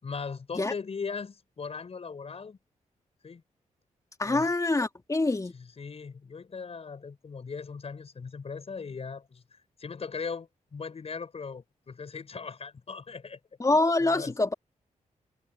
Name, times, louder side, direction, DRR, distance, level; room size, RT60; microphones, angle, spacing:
voice 1, 0.0-2.6 3.2-3.4 4.2-4.5 5.5-13.4 13.7-14.3, left 5 dB, 50° left, 6.1 m, -39 dB
voice 2, 4.2-5.5 13.6-14.5, left 2 dB, 25° left, 3.0 m, -25 dB
cardioid pair, 95°, 13 cm